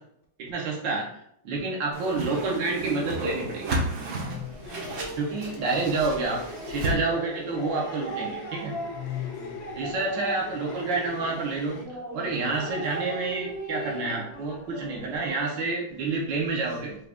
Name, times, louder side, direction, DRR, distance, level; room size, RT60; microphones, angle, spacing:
voice 1, 0.4-1.1 1.4-3.8 5.2-8.8 9.8-17.0, right 3 dB, 75° right, 1.4 m, -29 dB
Whoosh swoosh swish, 1.9-6.9, right 1 dB, 55° right, 1.0 m, -32 dB
voice 2, 4.2-5.3 8.9-9.8 16.7-16.8, left 10 dB, 70° left, 1.0 m, -39 dB
sound 1, 4.6-11.8, left 5 dB, 90° left, 1.6 m, -43 dB
sound 2, 4.6-15.4, right 1 dB, 30° left, 0.6 m, -39 dB
4.9 x 2.3 x 3.4 m
omnidirectional pair, 2.0 m